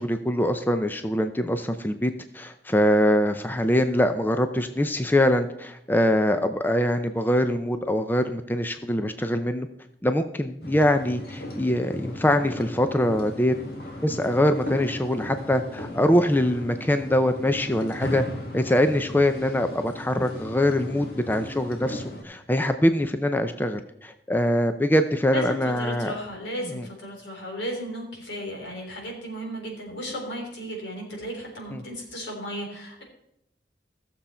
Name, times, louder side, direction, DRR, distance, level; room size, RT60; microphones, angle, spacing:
voice 1, 0.0-9.7 10.0-13.5 14.0-18.2 18.5-26.2 26.6-26.9 31.7-31.8, left 1 dB, 10° left, 8 dB, 0.5 m, -23 dB
sound 1, 10.6-22.2, left 1 dB, 55° left, 1.9 m, -37 dB
voice 2, 25.3-33.0, equal, 85° left, 0 dB, 3.9 m, -35 dB
16.0 x 7.0 x 4.4 m, 0.78 s
head